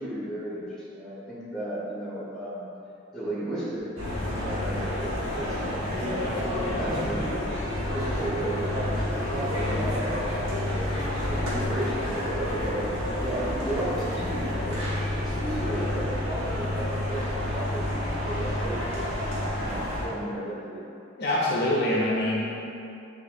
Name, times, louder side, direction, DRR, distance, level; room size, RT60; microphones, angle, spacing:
voice 1, 0.0-2.7 3.1-3.8 4.3-7.4 7.9-12.9 13.2-14.8 15.1-17.9 18.2-19.1 19.6-20.8, right 1 dB, ahead, -9 dB, 1.1 m, -34 dB
sound 1, 4.0-20.1, left 1 dB, 80° right, 1.1 m, -29 dB
voice 2, 21.2-22.5, left 1 dB, 55° left, -5 dB, 0.6 m, -25 dB
6.8 x 2.6 x 2.5 m, 2.7 s
head